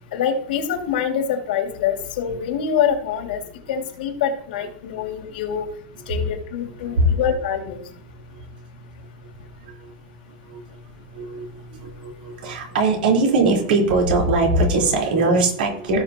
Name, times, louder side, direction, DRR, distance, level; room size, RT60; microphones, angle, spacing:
voice 1, 0.1-3.4 3.7-5.7 6.1-7.8, left 8 dB, 75° left, 4 dB, 2.4 m, -25 dB
voice 2, 6.8-7.2 8.1-16.0, right 2 dB, 90° right, -1 dB, 4.0 m, -22 dB
17.0 x 6.2 x 2.9 m, 0.64 s
supercardioid pair, 155°, 5 cm